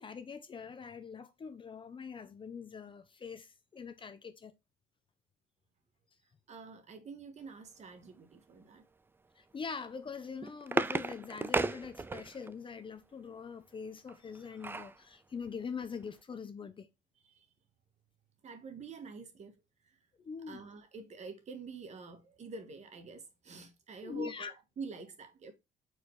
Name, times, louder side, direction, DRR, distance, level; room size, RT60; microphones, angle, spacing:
voice 1, 0.0-4.5 9.4-16.9 20.2-20.6 24.0-24.5, left 5 dB, 30° left, 0.7 m, -43 dB
voice 2, 6.5-8.8 17.2-17.5 18.4-20.0 20.5-25.5, right 4 dB, 40° right, 1.6 m, -47 dB
sound 1, 10.1-12.5 14.1-15.0 15.5-15.6 15.8-16.1, right 3 dB, 15° right, 0.4 m, -34 dB
4.6 x 4.3 x 4.7 m
cardioid pair, 110°, 17 cm